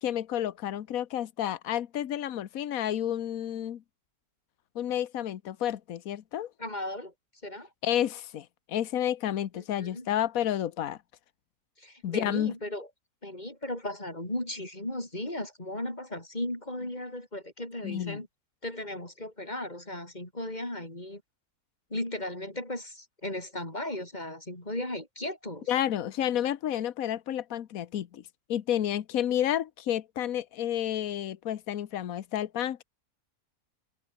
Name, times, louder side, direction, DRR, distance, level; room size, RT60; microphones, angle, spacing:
voice 1, 0.0-3.8 4.7-6.5 7.8-11.0 12.0-12.5 17.8-18.2 25.7-28.2 28.5-32.8, left 11 dB, 70° left, 1.4 m, -30 dB
voice 2, 6.6-7.1 7.4-7.7 9.8-10.1 11.8-12.9 13.2-18.3 18.6-21.2 21.9-25.7, left 1 dB, 30° left, 6.9 m, -36 dB
omnidirectional pair, 1.6 m